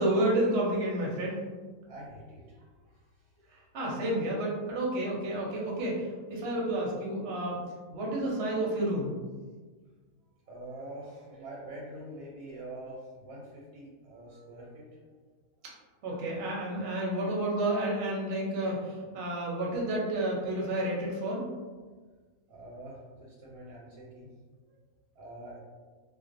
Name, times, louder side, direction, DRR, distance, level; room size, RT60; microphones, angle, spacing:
voice 1, 0.0-1.4 3.7-7.6 7.9-9.1 16.0-21.5, right 1 dB, 60° right, -3 dB, 0.7 m, -30 dB
voice 2, 1.9-3.6 10.5-14.9 22.5-24.3 25.2-25.6, right 1 dB, 85° right, -5 dB, 1.1 m, -45 dB
2.4 x 2.1 x 2.5 m, 1.4 s
omnidirectional pair, 1.6 m